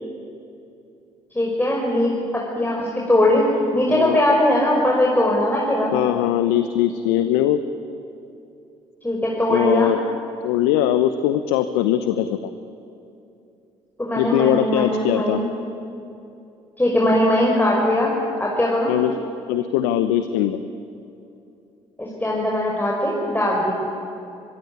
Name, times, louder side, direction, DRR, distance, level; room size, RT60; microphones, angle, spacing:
voice 1, 1.3-3.5 3.7-5.9 9.0-9.9 14.0-15.5 16.8-18.1 18.4-18.9 22.0-23.7, left 1 dB, 10° left, -3 dB, 5.7 m, -20 dB
voice 2, 5.9-7.6 9.5-10.0 10.4-12.4 14.2-15.4 18.9-19.1 19.5-20.6, left 11 dB, 75° left, 11 dB, 0.9 m, -20 dB
24.5 x 21.5 x 9.6 m, 2.7 s
hypercardioid pair, 55°, 16 cm